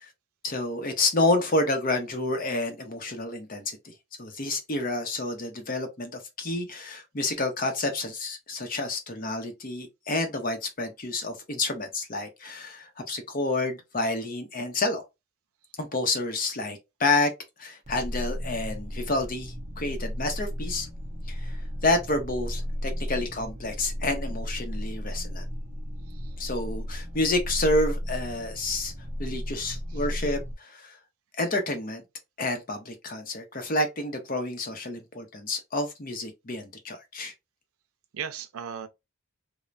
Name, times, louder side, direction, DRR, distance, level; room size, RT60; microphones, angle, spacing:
voice 1, 0.4-3.9 4.2-15.0 15.8-17.3 17.6-20.9 21.4-21.6 21.8-25.4 26.4-28.9 29.2-31.0 31.4-32.0 32.4-37.3, left 2 dB, 40° left, 0.6 m, -29 dB
sound 1, 17.9-30.5, equal, 35° right, 0.6 m, -34 dB
voice 2, 38.1-38.9, right 7 dB, 85° right, 0.5 m, -37 dB
3.2 x 2.1 x 2.5 m
head